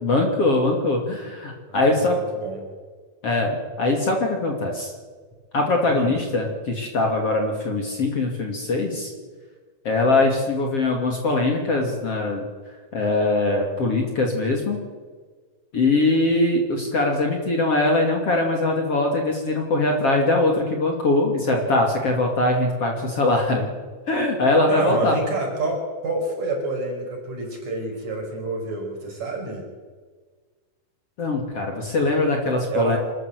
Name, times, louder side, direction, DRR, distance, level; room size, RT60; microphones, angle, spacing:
voice 1, 0.0-2.2 3.2-4.9 5.5-9.1 9.8-12.4 12.9-14.8 15.7-23.7 24.1-25.1 31.2-33.0, left 2 dB, 40° left, 2 dB, 3.2 m, -22 dB
voice 2, 1.7-2.6 5.9-6.1 24.7-25.8 26.0-29.6 32.7-33.0, right 3 dB, 45° right, 1 dB, 6.3 m, -28 dB
26.5 x 14.0 x 8.0 m, 1.5 s
omnidirectional pair, 4.4 m